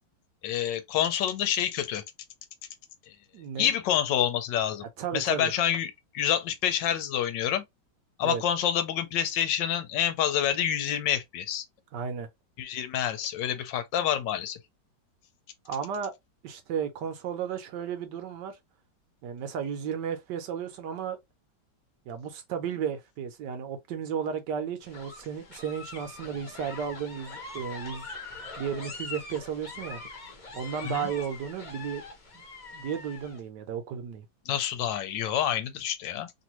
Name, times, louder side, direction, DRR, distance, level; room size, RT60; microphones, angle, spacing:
voice 1, 0.4-2.0 3.6-4.8 5.1-7.6 8.2-11.6 12.6-14.6 30.8-31.1 34.5-36.3, left 10 dB, 80° left, 1.3 m, -27 dB
voice 2, 3.3-3.7 5.0-5.5 8.2-8.4 11.9-12.3 15.7-16.1 16.4-18.6 19.2-21.2 22.1-28.1 28.6-30.0 30.5-32.0 32.7-34.3, right 7 dB, 75° right, 1.2 m, -34 dB
sound 1, 24.8-33.4, left 3 dB, 35° left, 0.8 m, -43 dB
3.1 x 2.6 x 2.9 m
omnidirectional pair, 2.0 m